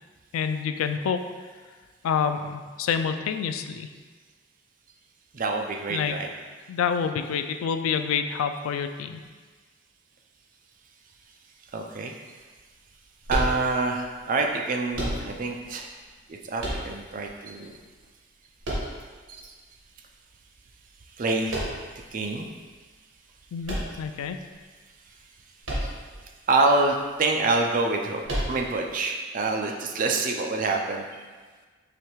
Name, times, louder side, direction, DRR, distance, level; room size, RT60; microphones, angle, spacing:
voice 1, 0.3-1.2 2.0-3.9 5.9-6.2 6.7-9.2 23.5-24.4, left 7 dB, 85° left, 10 dB, 0.3 m, -27 dB
voice 2, 5.3-6.3 11.7-12.1 13.3-15.9 16.3-17.8 19.3-19.4 21.2-21.6 22.1-22.5 25.8-25.9 26.5-28.2 28.5-31.2, right 3 dB, 40° right, 2 dB, 0.4 m, -26 dB
sound 1, 13.3-14.0 14.9-15.6 16.6-17.3 18.6-19.4 21.5-22.1 23.6-24.5 25.6-26.2 26.5-26.6 28.2-28.9, equal, 75° right, 1.2 m, -31 dB
4.9 x 3.1 x 3.0 m, 1.4 s
head